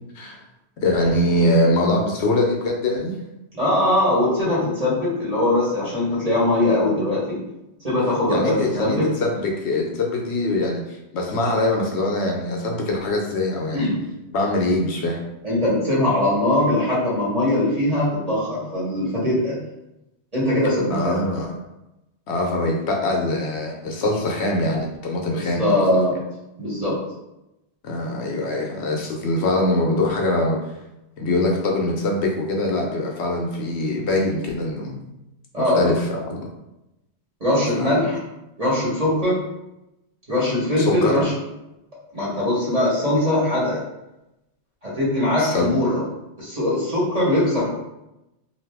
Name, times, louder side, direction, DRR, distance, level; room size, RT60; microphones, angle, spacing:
voice 1, 0.8-3.2 8.3-13.9 14.3-15.2 20.9-21.6 22.3-25.9 27.8-30.6 31.2-35.0 35.6-36.5 37.8-38.0 40.8-41.3 45.4-45.7, left 1 dB, 70° left, 0 dB, 0.9 m, -23 dB
voice 2, 3.5-7.4 7.8-9.1 13.7-14.1 15.4-19.6 20.3-21.2 25.3-26.1 26.6-27.0 35.5-35.8 37.4-38.2 38.6-39.4 40.3-41.3 42.1-43.8 44.8-46.0 46.4-47.7, left 1 dB, 35° right, -7 dB, 1.3 m, -21 dB
2.7 x 2.6 x 3.4 m, 0.92 s
omnidirectional pair, 1.2 m